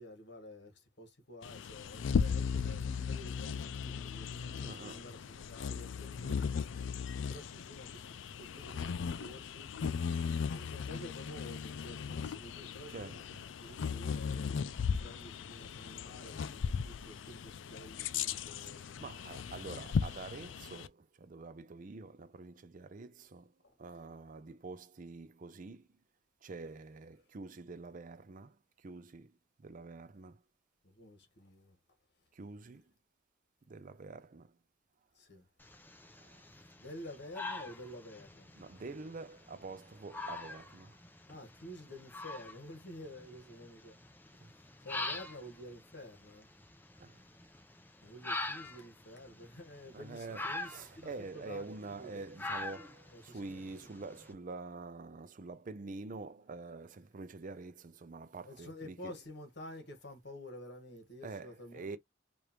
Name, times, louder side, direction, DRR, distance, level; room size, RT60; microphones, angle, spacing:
voice 1, 0.0-10.1 10.5-13.2 13.6-19.1 23.6-23.8 30.8-31.8 35.1-35.5 36.8-38.5 41.3-44.0 44.8-46.5 48.0-52.2 53.1-53.6 58.5-62.0, left 1 dB, 60° left, 1.4 m, -50 dB
Bird vocalization bird call bird song, 1.4-20.9, left 6 dB, 75° left, 0.4 m, -37 dB
voice 2, 4.6-5.1 12.9-13.4 18.8-23.5 23.8-25.9 26.4-29.3 29.6-30.4 32.3-32.9 33.7-34.6 36.2-36.5 38.5-41.0 44.4-44.5 47.0-47.2 49.9-59.1 61.2-62.0, right 3 dB, 45° right, 0.5 m, -46 dB
sound 1, 35.6-54.3, left 2 dB, 10° left, 0.7 m, -45 dB
4.9 x 2.5 x 2.9 m
head